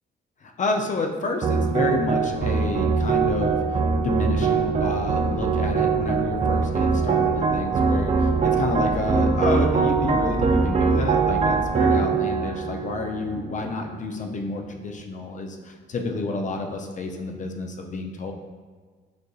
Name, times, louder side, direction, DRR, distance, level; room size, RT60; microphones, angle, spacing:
voice 1, 0.4-18.3, left 3 dB, 40° left, 3 dB, 0.5 m, -29 dB
sound 1, 1.4-13.9, right 5 dB, 35° right, 0.4 m, -22 dB
sound 2, 2.1-11.7, right 1 dB, 10° right, 0.9 m, -35 dB
6.5 x 2.6 x 2.3 m, 1.5 s
cardioid pair, 90°, 20 cm